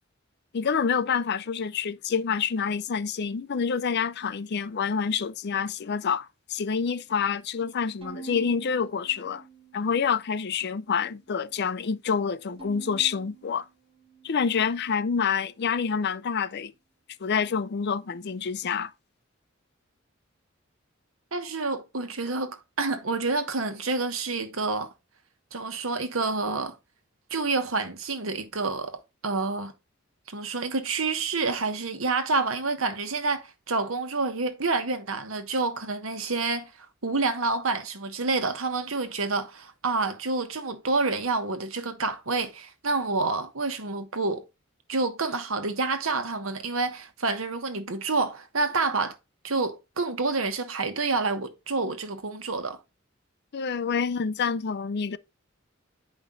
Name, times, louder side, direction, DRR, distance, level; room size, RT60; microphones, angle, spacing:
voice 1, 0.5-9.4 9.7-13.6 14.2-16.7 17.2-18.9 53.5-55.2, left 6 dB, 55° left, 0.5 m, -27 dB
Bowed string instrument, 8.0-10.4 10.8-11.6 12.6-15.1, right 5 dB, 25° right, 2.7 m, -48 dB
voice 2, 21.3-24.9 25.5-26.8 27.3-29.7 30.3-44.4 44.9-49.2 49.4-52.8, right 3 dB, 90° right, 1.2 m, -28 dB
8.9 x 5.2 x 3.8 m
head